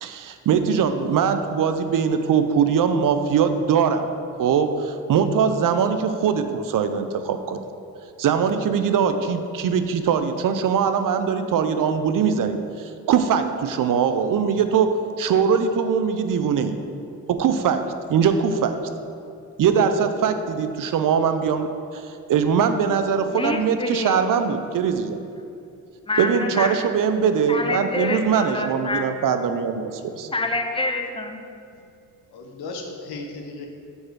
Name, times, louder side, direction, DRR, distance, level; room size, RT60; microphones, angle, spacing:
voice 1, 0.0-4.0 4.4-7.6 8.2-14.9 15.2-16.8 17.3-17.8 18.1-18.8 19.6-25.2 26.2-30.3, right 7 dB, 60° right, 9 dB, 0.5 m, -21 dB
voice 2, 23.3-24.3 26.1-26.8 27.5-29.1 30.3-31.4, left 2 dB, 15° left, 5 dB, 0.6 m, -27 dB
voice 3, 32.3-33.7, left 3 dB, 85° left, 2 dB, 0.8 m, -36 dB
5.1 x 4.0 x 4.7 m, 2.4 s
supercardioid pair, 50°, 37 cm